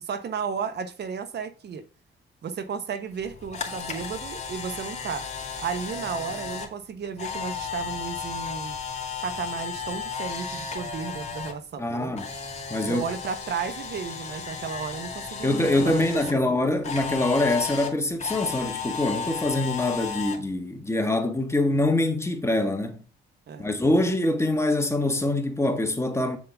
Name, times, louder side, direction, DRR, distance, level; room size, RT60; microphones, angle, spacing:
voice 1, 0.0-1.8 2.4-5.2 5.6-8.8 9.2-12.1 12.9-16.5 23.5-23.8, right 6 dB, 55° right, 1.2 m, -33 dB
Camera, 3.2-11.5 11.8-16.3 16.8-20.4, left 6 dB, 35° left, 2.4 m, -34 dB
voice 2, 11.8-12.3 12.7-13.0 15.4-23.0 23.6-26.4, left 1 dB, 15° left, 1.7 m, -24 dB
7.7 x 7.2 x 3.6 m
cardioid pair, 90°, 20 cm